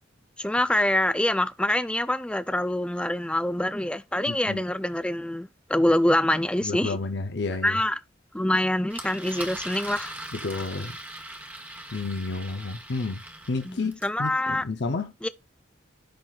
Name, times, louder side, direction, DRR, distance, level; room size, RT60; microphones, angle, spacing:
voice 1, 0.4-7.0 7.6-8.0 8.3-10.1 13.7-14.6 15.2-15.3, left 1 dB, 5° left, 0.5 m, -25 dB
voice 2, 4.3-4.6 6.6-7.8 10.3-11.0 11.9-13.2 13.5-15.1, left 3 dB, 65° left, 0.7 m, -31 dB
Engine, 8.9-14.2, right 1 dB, 10° right, 1.2 m, -40 dB
10.5 x 4.0 x 2.4 m
head